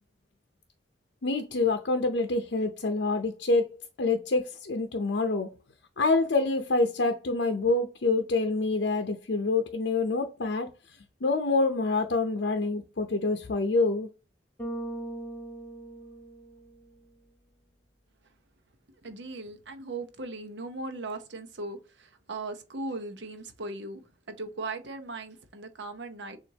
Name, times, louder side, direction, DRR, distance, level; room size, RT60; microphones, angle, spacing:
voice 1, 1.2-3.7 4.0-5.5 6.0-10.7 11.2-14.1, left 3 dB, 75° left, 0.6 m, -26 dB
Bass guitar, 14.6-16.9, right 1 dB, 10° left, 1.2 m, -39 dB
voice 2, 19.0-24.0 24.3-26.4, right 2 dB, 75° right, 0.8 m, -38 dB
7.0 x 2.5 x 2.8 m
head